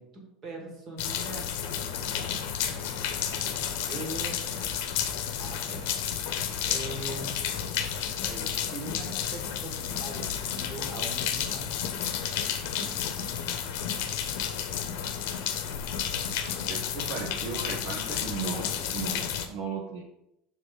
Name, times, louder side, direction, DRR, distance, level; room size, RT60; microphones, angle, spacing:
voice 1, 0.0-2.2 3.9-4.3 5.4-6.1 6.6-7.8 8.2-9.7 10.0-11.9, right 2 dB, 30° right, 0 dB, 1.6 m, -41 dB
sound 1, 1.0-19.5, left 8 dB, 75° left, 0.8 m, -31 dB
voice 2, 16.7-20.0, right 5 dB, 55° right, 1 dB, 0.8 m, -36 dB
6.8 x 3.7 x 5.1 m, 0.86 s
cardioid pair, 170°, 0 cm